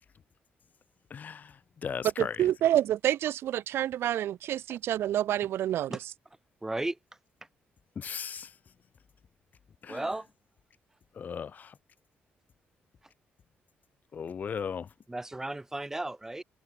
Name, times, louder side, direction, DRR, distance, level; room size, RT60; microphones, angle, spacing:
voice 1, 1.1-2.5 8.0-8.5 9.8-10.1 11.1-11.8 14.1-14.9, left 7 dB, 45° left, 2.0 m, -37 dB
voice 2, 2.2-6.0, right 12 dB, 75° right, 0.8 m, -28 dB
voice 3, 6.6-7.0 9.9-10.3 15.1-16.4, right 2 dB, 10° right, 2.1 m, -34 dB
open air
cardioid pair, 125°, 4 cm